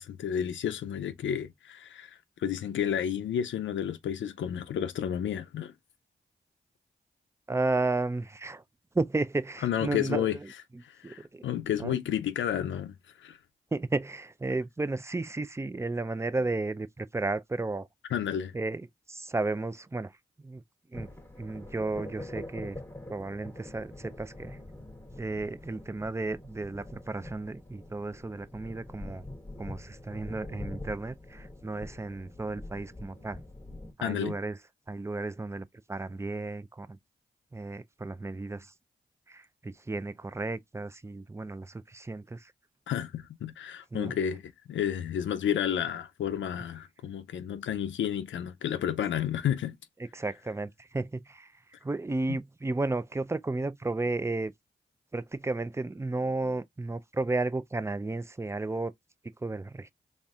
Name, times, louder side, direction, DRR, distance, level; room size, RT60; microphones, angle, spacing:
voice 1, 0.0-5.7 9.6-10.4 10.8-13.4 18.1-18.5 34.0-34.3 42.9-49.8, left 9 dB, 90° left, 0.5 m, -31 dB
voice 2, 7.5-8.6 8.9-10.5 10.7-11.5 11.8-12.0 13.7-17.9 18.5-20.6 20.9-21.1 21.4-22.8 23.1-24.6 25.2-29.2 29.6-33.4 34.0-34.6 34.9-37.0 37.5-38.7 39.3-42.5 43.9-44.1 50.0-54.5 55.1-58.9 59.4-59.9, right 2 dB, 15° right, 0.4 m, -33 dB
sound 1, 20.9-33.9, left 1 dB, 10° left, 1.3 m, -44 dB
4.0 x 3.5 x 2.3 m
cardioid pair, 45°, 19 cm